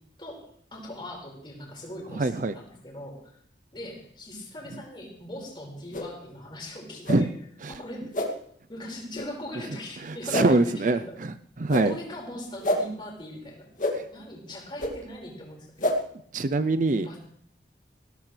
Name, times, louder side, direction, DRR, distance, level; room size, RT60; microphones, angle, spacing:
voice 1, 0.2-3.4 3.7-7.3 7.7-8.1 8.7-11.2 11.8-13.7 14.1-16.0 16.9-17.2, left 1 dB, 25° left, -1 dB, 5.1 m, -40 dB
voice 2, 2.1-2.5 7.1-7.3 7.6-7.7 10.1-12.0 13.9-14.1 16.3-17.1, right 2 dB, 45° right, 12 dB, 0.5 m, -24 dB
sound 1, 5.9-6.1 7.0-7.2 8.1-8.3 9.1-9.3 10.3-10.5 11.7-11.9 12.6-12.8 13.8-13.9 14.8-14.9 15.8-15.9, left 1 dB, 45° left, 2.3 m, -27 dB
19.0 x 17.0 x 3.3 m, 0.63 s
head